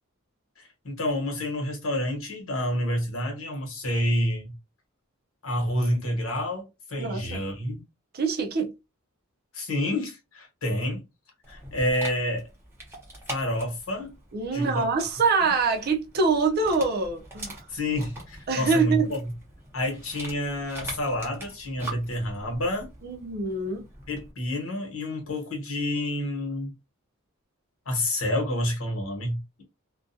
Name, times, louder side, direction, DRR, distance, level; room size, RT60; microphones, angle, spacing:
voice 1, 0.6-4.5 5.4-7.8 9.5-11.0 11.5-12.4 13.3-14.1 14.5-14.9 15.4-15.5 17.7-19.3 19.7-22.9 24.1-26.7 27.9-29.6, left 1 dB, 70° left, 1.1 m, -29 dB
voice 2, 7.0-7.4 8.1-8.7 14.3-17.7 18.5-19.1 23.0-23.9, right 4 dB, 45° right, 0.5 m, -25 dB
Dog, 11.4-24.3, right 1 dB, 10° right, 0.9 m, -43 dB
2.4 x 2.2 x 2.6 m
head